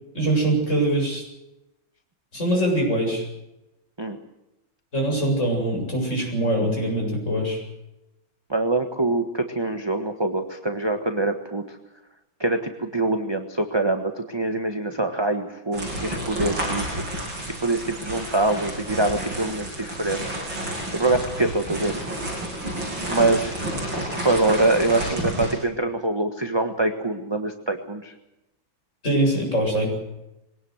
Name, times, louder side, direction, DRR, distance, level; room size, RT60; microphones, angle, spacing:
voice 1, 0.1-1.2 2.3-3.2 4.9-7.6 29.0-29.9, right 1 dB, 35° left, 0 dB, 8.2 m, -23 dB
voice 2, 8.5-11.8 12.4-17.0 17.6-20.3 20.9-22.0 23.1-23.6 24.2-28.1, right 2 dB, 15° right, 5 dB, 1.2 m, -24 dB
sound 1, 15.7-25.5, right 1 dB, 75° right, 8.6 m, -30 dB
22.5 x 18.0 x 8.0 m, 0.92 s
omnidirectional pair, 2.1 m